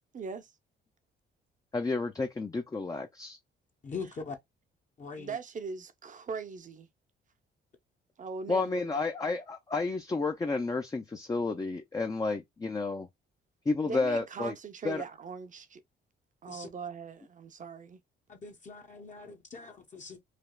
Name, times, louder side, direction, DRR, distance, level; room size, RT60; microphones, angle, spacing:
voice 1, 0.1-0.5 5.2-6.9 8.2-8.9 13.8-15.8 16.4-18.0, right 5 dB, 40° right, 0.7 m, -40 dB
voice 2, 1.7-3.4 8.5-13.1 13.7-14.5 14.8-15.0, left 3 dB, 20° left, 0.4 m, -31 dB
voice 3, 3.8-4.4 5.0-5.4 16.5-16.7 18.3-20.2, left 4 dB, 40° left, 0.8 m, -42 dB
3.2 x 2.3 x 2.3 m
cardioid pair, 90°, 20 cm